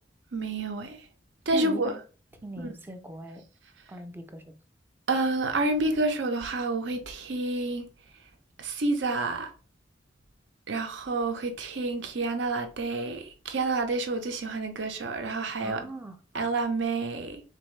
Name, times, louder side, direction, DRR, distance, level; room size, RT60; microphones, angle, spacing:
voice 1, 0.3-1.0 1.5-2.0 2.6-2.7 5.1-7.9 8.6-9.5 10.7-15.8 16.3-17.4, right 2 dB, 75° right, 0.7 m, -29 dB
voice 2, 1.5-2.0 2.4-3.4 3.9-4.5 15.6-16.2, right 2 dB, 10° right, 0.4 m, -39 dB
4.0 x 2.6 x 3.2 m
head